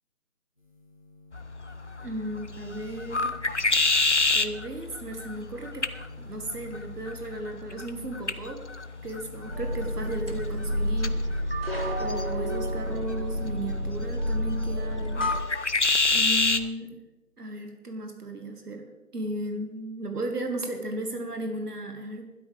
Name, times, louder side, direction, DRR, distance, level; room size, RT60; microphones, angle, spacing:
sound 1, 0.6-13.5 13.9-14.9, left 1 dB, 25° left, 1.5 m, -50 dB
sound 2, 1.3-16.7, left 3 dB, 50° left, 0.6 m, -30 dB
voice 1, 2.0-3.3 4.3-5.9 6.2-8.6 9.0-15.3 16.1-17.0 17.4-22.3, right 1 dB, 85° right, 4 dB, 1.9 m, -35 dB
sound 3, 9.5-15.4, equal, 40° right, 1.3 m, -30 dB
17.0 x 12.0 x 3.5 m, 1.1 s
figure-of-eight pair, 180°, 45 cm